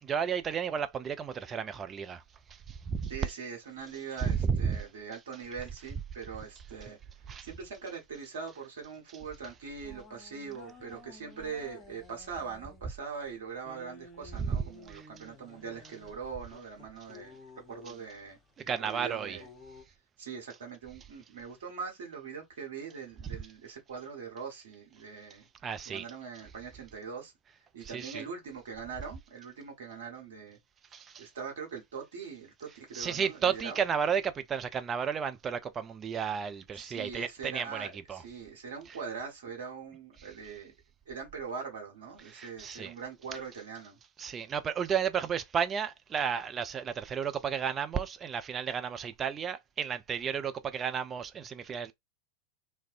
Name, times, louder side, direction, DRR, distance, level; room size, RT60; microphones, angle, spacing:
voice 1, 0.0-2.2 2.5-3.1 4.2-4.8 7.3-7.5 14.4-14.5 14.9-15.1 18.7-19.4 25.6-26.1 27.8-28.2 30.9-31.3 32.9-38.2 42.3-42.9 44.2-51.9, right 7 dB, 25° right, 0.3 m, -33 dB
voice 2, 3.1-7.0 7.4-17.4 17.7-18.4 18.8-19.5 20.2-25.5 25.9-27.3 27.7-30.6 31.2-33.8 36.7-40.7 41.1-44.0, right 5 dB, 60° right, 0.9 m, -42 dB
sound 1, 9.8-19.8, left 3 dB, 5° left, 0.9 m, -54 dB
2.4 x 2.0 x 2.5 m
figure-of-eight pair, 90°, 0 cm